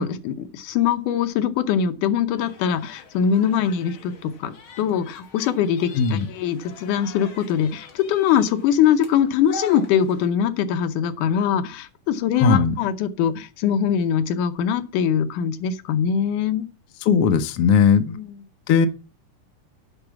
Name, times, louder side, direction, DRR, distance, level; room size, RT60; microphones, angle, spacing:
voice 1, 0.0-16.7 18.0-18.4, left 8 dB, 80° left, 2.4 m, -22 dB
sound 1, 2.4-10.2, left 3 dB, 45° left, 2.2 m, -42 dB
voice 2, 5.9-6.3 12.4-12.7 17.0-18.2 18.7-18.9, left 6 dB, 65° left, 1.6 m, -18 dB
10.5 x 4.6 x 7.2 m
omnidirectional pair, 3.6 m